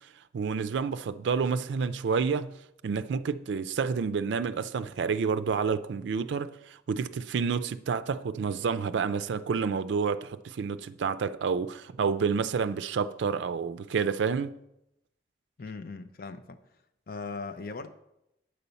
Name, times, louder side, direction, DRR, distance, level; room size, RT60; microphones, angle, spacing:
voice 1, 0.3-2.5 2.8-14.5, right 5 dB, 85° right, 0.4 m, -29 dB
voice 2, 15.6-16.6 17.1-17.9, left 4 dB, 50° left, 0.5 m, -39 dB
8.8 x 4.1 x 6.9 m
head